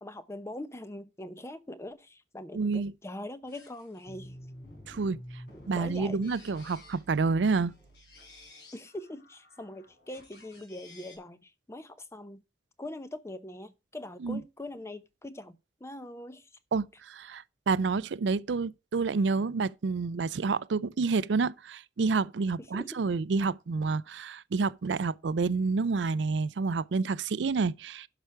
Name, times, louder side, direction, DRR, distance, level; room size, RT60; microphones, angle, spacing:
voice 1, 0.0-4.4 5.7-6.2 8.7-12.4 12.8-16.5 22.7-23.0, left 1 dB, 15° left, 0.7 m, -42 dB
voice 2, 2.5-2.9 4.9-5.2 5.7-7.7 14.2-14.4 16.7-28.1, right 4 dB, 75° right, 0.5 m, -29 dB
sound 1, 3.5-11.2, left 1 dB, 65° left, 4.9 m, -51 dB
11.0 x 5.9 x 4.6 m
head